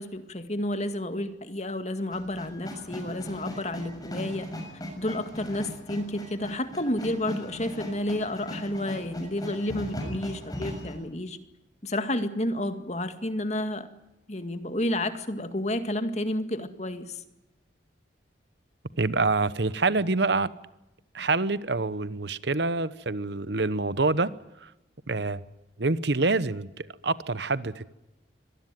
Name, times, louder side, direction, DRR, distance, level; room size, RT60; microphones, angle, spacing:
voice 1, 0.0-4.5 5.0-11.4 11.8-13.9 14.3-17.2, left 1 dB, 35° left, 2.0 m, -31 dB
sound 1, 2.1-10.9, equal, 20° left, 6.9 m, -38 dB
voice 2, 19.0-20.5 21.1-24.3 24.6-24.7 25.1-25.4 25.8-27.9, right 3 dB, 65° right, 1.0 m, -26 dB
25.0 x 19.0 x 9.3 m
head